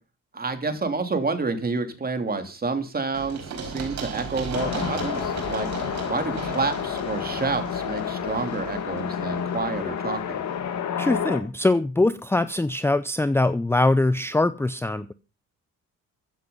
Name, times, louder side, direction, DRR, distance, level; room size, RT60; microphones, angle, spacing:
voice 1, 0.3-5.7 6.1-10.4, right 4 dB, 30° right, 3.0 m, -29 dB
Run, 3.1-10.8, right 5 dB, 65° right, 5.4 m, -37 dB
sound 1, 4.5-11.4, left 8 dB, 70° left, 2.3 m, -30 dB
voice 2, 11.0-15.1, left 2 dB, 10° left, 0.6 m, -22 dB
15.0 x 9.6 x 5.6 m
cardioid pair, 90°, 30 cm